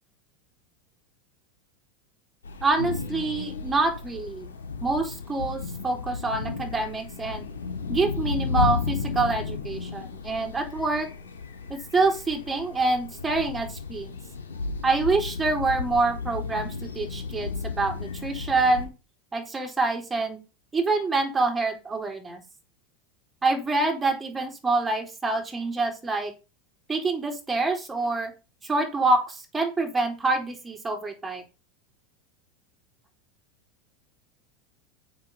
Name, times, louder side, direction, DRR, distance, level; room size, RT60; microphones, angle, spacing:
sound 1, 2.4-18.9, left 5 dB, 80° left, 2.4 m, -33 dB
voice 1, 2.6-4.5 4.8-7.5 7.9-11.1 11.7-14.2 14.8-18.9 19.3-20.4 20.7-22.4 23.4-26.3 26.9-28.3 28.7-31.4, right 3 dB, 15° right, 3 dB, 4.0 m, -26 dB
7.3 x 6.4 x 5.9 m, 0.29 s
hypercardioid pair, 90°, 0 cm